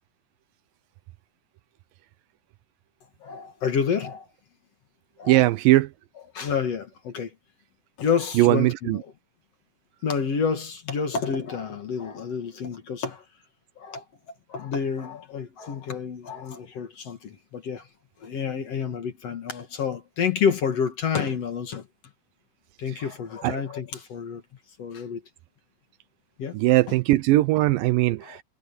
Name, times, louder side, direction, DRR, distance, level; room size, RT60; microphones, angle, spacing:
voice 1, 3.2-4.3 5.2-5.4 6.3-7.3 8.0-9.1 10.0-13.2 13.8-14.0 14.5-17.9 18.2-21.9 22.8-24.4 24.8-25.2 26.4-26.6 28.2-28.4, left 6 dB, 50° left, 2.4 m, -29 dB
voice 2, 5.3-5.9 8.4-9.0 23.4-23.6 26.5-28.4, right 17 dB, 80° right, 2.2 m, -20 dB
omnidirectional pair, 4.2 m